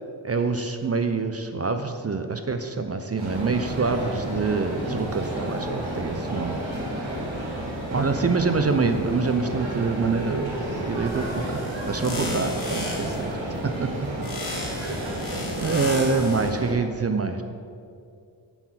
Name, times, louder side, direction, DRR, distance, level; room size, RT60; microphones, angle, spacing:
voice 1, 0.2-6.6 6.8-7.1 7.9-13.3 13.6-14.1 14.7-15.2 15.6-17.4, right 4 dB, 30° right, 8 dB, 0.5 m, -26 dB
sound 1, 3.2-16.7, right 1 dB, 70° right, 2.1 m, -31 dB
sound 2, 11.1-13.3 14.2-16.5, left 2 dB, 45° left, 1.8 m, -35 dB
7.0 x 5.7 x 5.7 m, 2.3 s
cardioid pair, 55°, 47 cm